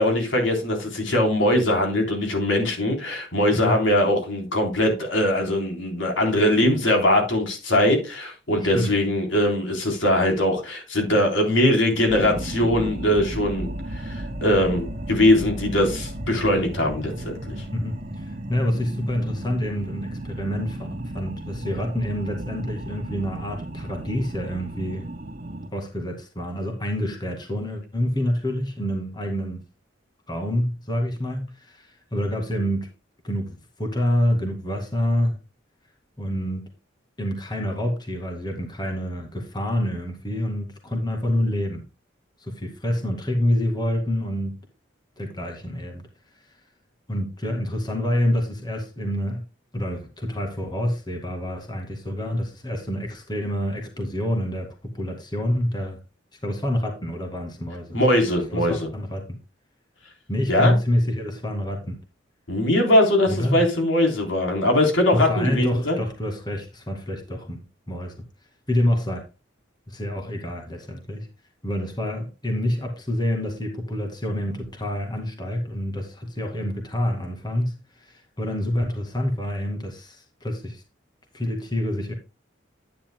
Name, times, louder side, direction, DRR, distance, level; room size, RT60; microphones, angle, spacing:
voice 1, 0.0-13.7 14.0-17.5 57.9-58.7 60.5-60.7 62.5-66.0, left 1 dB, 85° left, 3.8 m, -21 dB
voice 2, 8.6-9.0 17.7-25.1 25.7-29.6 30.3-32.9 33.2-35.4 36.2-36.6 37.2-41.8 42.4-44.6 45.2-46.0 46.3-46.6 47.1-49.4 49.7-56.0 56.3-58.0 58.5-59.4 60.3-62.0 63.3-63.6 65.1-68.2 68.7-69.3 69.9-71.3 71.6-80.8 81.3-82.1, left 1 dB, 25° left, 2.1 m, -27 dB
sound 1, 12.1-25.7, right 1 dB, 50° right, 2.4 m, -34 dB
10.5 x 10.0 x 2.2 m
head